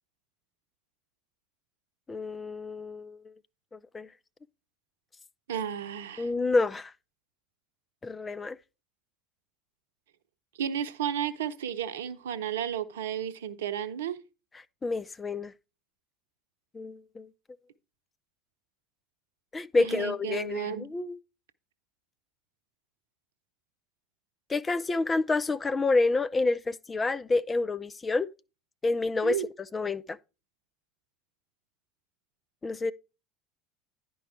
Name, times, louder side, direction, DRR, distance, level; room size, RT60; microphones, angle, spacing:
voice 1, 2.1-3.2 3.7-4.1 6.2-6.9 8.0-8.6 14.8-15.5 16.7-17.3 19.5-21.2 24.5-28.3 28.8-29.4 29.7-30.2 32.6-32.9, left 3 dB, 20° left, 0.5 m, -28 dB
voice 2, 5.5-6.3 10.6-14.2 19.8-20.9 29.2-29.4, right 9 dB, 75° right, 0.8 m, -33 dB
10.5 x 4.7 x 4.5 m
hypercardioid pair, 70°, 0 cm